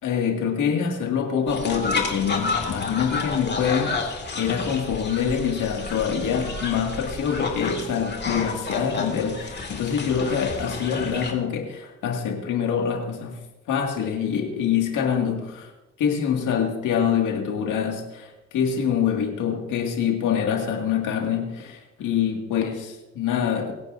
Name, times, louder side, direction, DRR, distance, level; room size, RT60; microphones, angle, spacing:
voice 1, 0.0-13.4 13.7-15.7 16.0-23.7, left 7 dB, 85° left, 2 dB, 2.2 m, -25 dB
sound 1, 1.5-11.3, left 4 dB, 35° left, 2.2 m, -31 dB
25.0 x 9.5 x 2.7 m, 1.1 s
cardioid pair, 90°, 30 cm